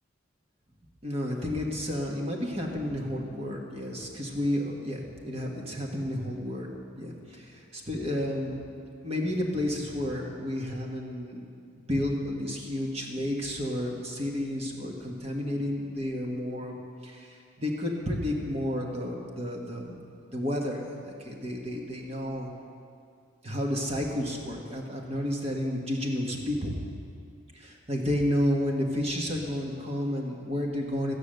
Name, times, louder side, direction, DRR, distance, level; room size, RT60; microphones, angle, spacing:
voice 1, 1.0-6.7 7.0-8.6 9.0-11.5 11.7-16.8 17.0-20.0 20.3-22.5 23.4-26.7 27.5-31.1, left 1 dB, 30° right, 0 dB, 1.5 m, -31 dB
13.5 x 9.7 x 6.6 m, 2.4 s
head